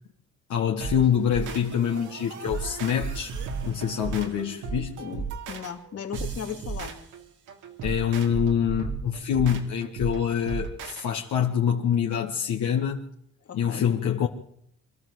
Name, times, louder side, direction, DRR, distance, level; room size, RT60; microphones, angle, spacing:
voice 1, 0.5-3.3 3.6-5.0 7.8-13.0 13.5-14.3, left 8 dB, 70° left, 1.8 m, -25 dB
sound 1, 0.8-11.1, right 5 dB, 85° right, 3.4 m, -35 dB
voice 2, 5.0-6.9 13.4-13.9, left 7 dB, 55° left, 2.9 m, -37 dB
25.5 x 13.0 x 8.0 m
cardioid pair, 90°, 30 cm